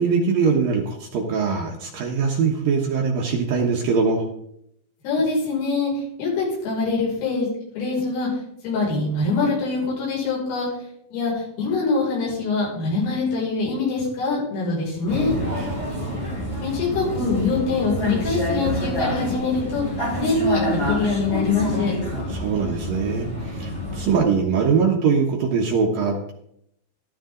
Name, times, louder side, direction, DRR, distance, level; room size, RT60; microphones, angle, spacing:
voice 1, 0.0-4.3 15.4-15.8 22.3-26.3, right 5 dB, 70° right, 0 dB, 2.2 m, -22 dB
voice 2, 5.0-7.5 7.8-8.3 8.6-10.7 11.1-15.3 16.6-19.8 20.2-21.9, left 3 dB, 85° left, -5 dB, 8.7 m, -24 dB
Vehicle, 15.1-24.2, left 1 dB, 10° left, 5.0 m, -27 dB
15.5 x 13.0 x 3.9 m, 0.74 s
omnidirectional pair, 5.8 m